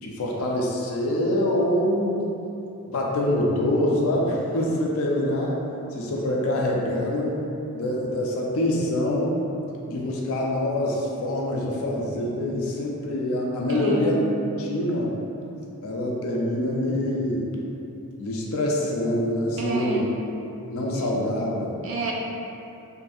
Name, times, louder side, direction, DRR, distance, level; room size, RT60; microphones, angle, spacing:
voice 1, 0.0-2.2 2.9-5.6 5.9-7.4 7.7-9.3 9.9-14.2 14.6-15.1 15.8-17.5 18.2-20.0 20.7-21.8, left 1 dB, 65° left, -2 dB, 0.4 m, -25 dB
voice 2, 13.7-14.2 19.6-20.1 21.8-22.1, right 3 dB, 60° right, -3 dB, 0.4 m, -29 dB
2.6 x 2.3 x 2.6 m, 2.9 s
head